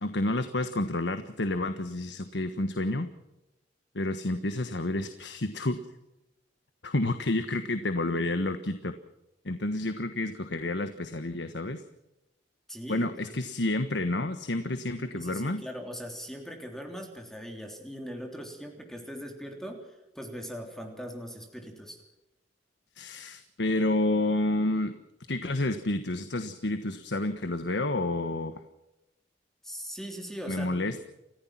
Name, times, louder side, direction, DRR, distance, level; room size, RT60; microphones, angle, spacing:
voice 1, 0.0-3.1 3.9-5.8 6.8-8.9 9.4-11.8 12.9-15.6 23.0-25.0 25.3-28.5 30.5-31.0, left 2 dB, 80° left, 9 dB, 1.4 m, -29 dB
voice 2, 12.7-13.4 15.0-22.0 29.6-30.9, equal, 5° left, 3 dB, 3.3 m, -40 dB
30.0 x 15.5 x 6.0 m, 0.95 s
head